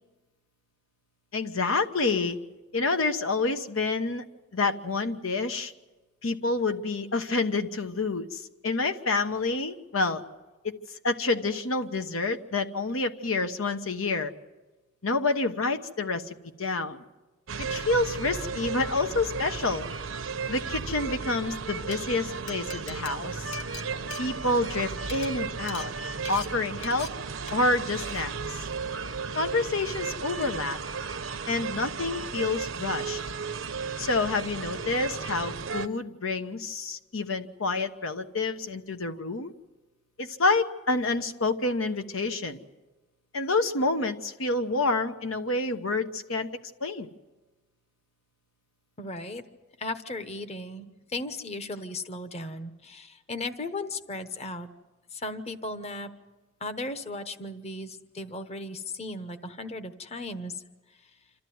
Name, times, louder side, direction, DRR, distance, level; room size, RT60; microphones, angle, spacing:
voice 1, 1.3-2.4 2.7-4.2 4.5-5.7 6.2-10.2 10.6-10.8 11.0-14.3 15.0-17.0 17.6-19.9 20.5-23.4 24.2-25.9 26.3-27.1 27.5-28.6 29.3-30.8 31.5-33.2 34.0-39.5 40.2-42.6 43.3-46.5 46.8-47.1, left 3 dB, 90° left, 8 dB, 1.1 m, -28 dB
sound 1, 17.5-35.9, right 5 dB, 75° right, 0.8 m, -35 dB
Glass, 21.7-22.0 22.5-24.8 25.0-25.3 25.7-25.9 26.3-26.5 26.8-27.1 27.5-27.7 28.0-28.2, left 5 dB, 60° left, 1.4 m, -41 dB
voice 2, 49.0-49.4 49.8-54.7 55.1-56.1 56.6-60.6, left 2 dB, 30° left, 9 dB, 1.0 m, -36 dB
27.0 x 14.0 x 9.4 m, 1.2 s
head